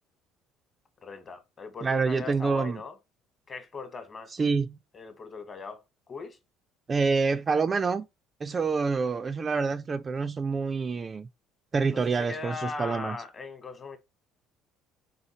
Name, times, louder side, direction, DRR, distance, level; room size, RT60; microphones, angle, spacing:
voice 1, 1.0-3.0 3.5-4.4 4.9-6.4 11.9-14.0, left 4 dB, 30° left, 1.1 m, -39 dB
voice 2, 1.8-2.8 4.4-4.8 6.9-8.0 8.4-11.3 11.7-13.2, right 4 dB, 30° right, 0.3 m, -27 dB
4.2 x 3.7 x 2.9 m
cardioid pair, 115°, 0 cm